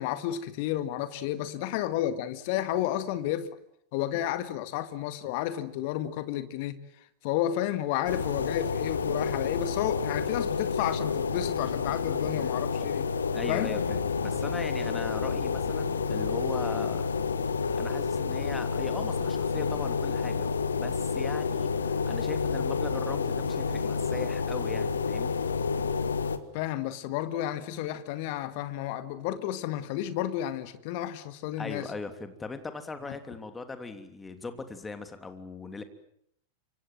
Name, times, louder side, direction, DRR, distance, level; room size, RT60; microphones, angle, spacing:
voice 1, 0.0-3.5 3.9-6.8 7.2-13.1 13.5-13.7 26.5-31.9 33.1-33.2, left 12 dB, 45° left, 1.9 m, -31 dB
sound 1, 8.1-26.4, left 5 dB, 70° left, 1.7 m, -29 dB
voice 2, 13.3-17.0 17.7-25.4 31.6-35.8, left 3 dB, 15° left, 3.1 m, -39 dB
28.5 x 25.5 x 7.7 m
figure-of-eight pair, 90°, 0 cm